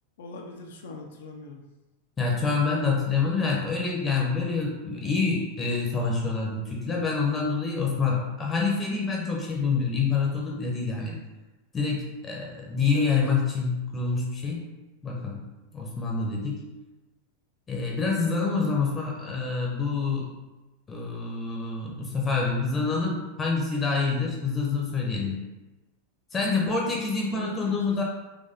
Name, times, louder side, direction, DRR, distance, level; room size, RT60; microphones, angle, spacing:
voice 1, 0.2-1.6 12.9-13.2 27.3-28.0, left 2 dB, 60° left, 2 dB, 0.4 m, -41 dB
voice 2, 2.2-11.2 11.7-14.7 15.0-15.4 15.7-16.7 17.7-20.3 20.9-25.4 26.3-28.0, left 4 dB, 20° left, -2 dB, 0.7 m, -27 dB
4.0 x 3.0 x 2.7 m, 1.1 s
figure-of-eight pair, 90°, 0 cm